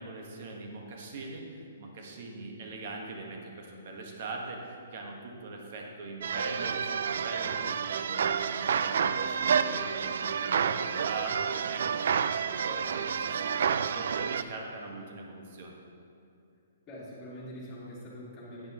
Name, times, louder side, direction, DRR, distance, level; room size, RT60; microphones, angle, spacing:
voice 1, 0.0-15.7, right 2 dB, 45° right, 1 dB, 1.4 m, -42 dB
sound 1, 6.2-14.4, right 7 dB, 65° right, 0.3 m, -29 dB
voice 2, 16.9-18.7, equal, 15° left, -9 dB, 2.1 m, -44 dB
10.0 x 9.1 x 3.0 m, 2.5 s
hypercardioid pair, 165°, 0 cm